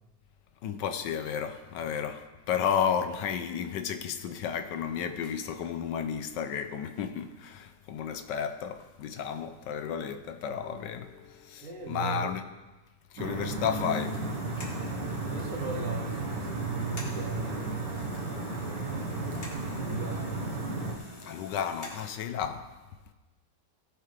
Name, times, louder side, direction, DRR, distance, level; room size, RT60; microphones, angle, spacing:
voice 1, 0.6-12.4 13.1-14.2 14.6-14.7 20.8-20.9 21.2-22.7, left 8 dB, 75° left, 1.3 m, -32 dB
voice 2, 11.6-12.4 15.3-19.2 19.8-20.6, right 4 dB, 45° right, 2.3 m, -38 dB
sound 1, 13.2-20.9, right 2 dB, 75° right, 2.0 m, -34 dB
sound 2, 13.7-22.1, left 1 dB, 30° left, 2.2 m, -48 dB
18.5 x 8.1 x 3.3 m
omnidirectional pair, 1.9 m